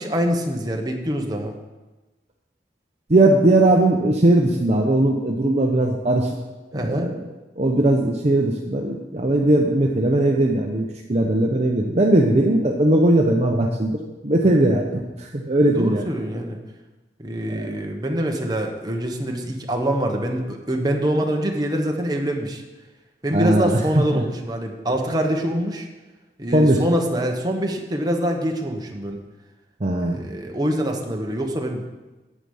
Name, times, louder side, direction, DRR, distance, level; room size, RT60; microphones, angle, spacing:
voice 1, 0.0-1.5 6.7-7.1 14.4-14.7 15.6-16.6 17.2-22.6 23.2-25.9 26.4-29.2 30.0-31.8, equal, 25° right, 2 dB, 1.2 m, -25 dB
voice 2, 3.1-6.3 6.7-7.2 7.6-16.1 17.5-17.7 23.3-24.2 26.5-26.8 29.8-30.2, right 1 dB, 40° right, 0 dB, 0.8 m, -19 dB
9.8 x 8.5 x 5.5 m, 1.1 s
head